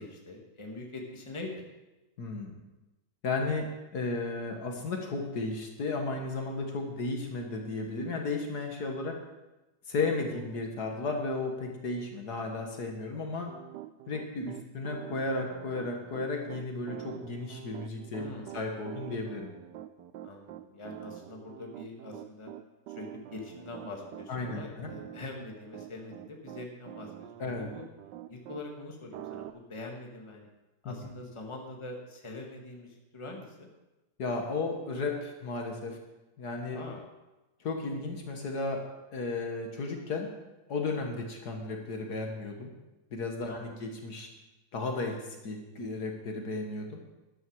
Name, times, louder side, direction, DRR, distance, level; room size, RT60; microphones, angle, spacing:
voice 1, 0.0-1.6 10.3-10.5 18.1-18.6 20.2-22.5 22.9-27.3 27.6-27.8 28.3-30.5 30.8-33.7 36.7-37.0 43.5-43.8, left 2 dB, 15° left, 1 dB, 1.7 m, -44 dB
voice 2, 2.2-2.5 3.2-3.7 3.9-9.1 9.9-13.5 14.1-18.3 18.5-19.5 24.3-24.9 27.4-27.7 30.9-31.0 34.2-36.0 36.4-36.8 37.6-38.8 39.1-40.3 40.7-42.7 43.1-44.3 44.7-47.0, left 3 dB, 65° left, 2 dB, 2.0 m, -34 dB
Piano, 13.5-28.6 29.1-29.5, right 13 dB, 80° right, 1.3 m, -45 dB
13.0 x 11.0 x 4.7 m, 1.0 s
omnidirectional pair, 1.9 m